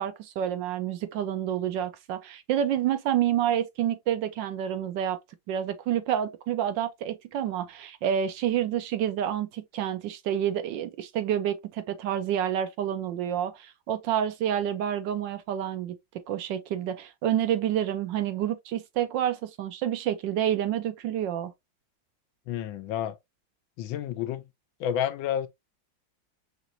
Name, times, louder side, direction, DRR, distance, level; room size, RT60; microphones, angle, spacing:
voice 1, 0.0-5.2 5.5-16.0 16.3-21.5, right 10 dB, 75° right, 1.3 m, -28 dB
voice 2, 22.5-23.2 23.8-24.5 24.8-25.5, left 10 dB, 80° left, 1.4 m, -30 dB
6.1 x 2.9 x 2.5 m
omnidirectional pair, 2.1 m